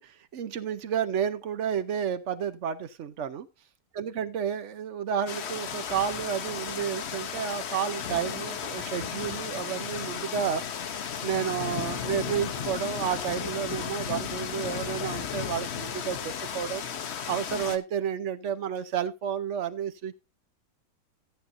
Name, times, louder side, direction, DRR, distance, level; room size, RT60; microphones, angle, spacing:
voice 1, 0.0-3.5 3.9-10.9 11.2-16.8 17.3-20.2, right 8 dB, 55° right, 0.9 m, -31 dB
sound 1, 5.3-17.8, left 8 dB, 55° left, 0.9 m, -34 dB
14.0 x 9.2 x 2.6 m
omnidirectional pair, 1.8 m